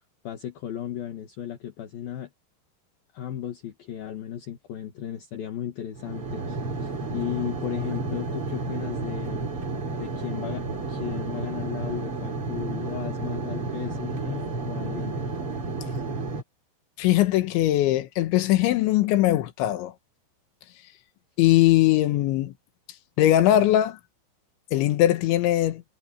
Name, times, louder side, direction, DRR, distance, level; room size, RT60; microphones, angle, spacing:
voice 1, 0.2-2.3 3.1-9.5 10.0-15.4, left 11 dB, 60° left, 3.2 m, -35 dB
sound 1, 5.9-16.4, right 3 dB, 30° right, 3.6 m, -31 dB
voice 2, 17.0-19.9 21.4-22.5 23.2-24.0 24.7-25.8, left 14 dB, 80° left, 3.5 m, -20 dB
omnidirectional pair, 5.4 m